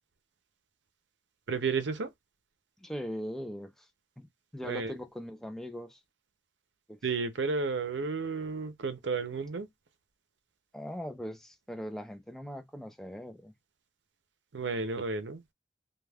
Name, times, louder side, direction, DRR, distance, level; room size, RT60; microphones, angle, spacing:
voice 1, 1.5-2.1 4.6-4.9 7.0-9.7 14.5-15.4, right 4 dB, 85° right, 0.6 m, -32 dB
voice 2, 2.8-3.9 4.2-4.3 4.5-6.0 6.9-7.0 10.7-13.5, equal, 5° left, 0.4 m, -40 dB
2.3 x 2.3 x 3.3 m
head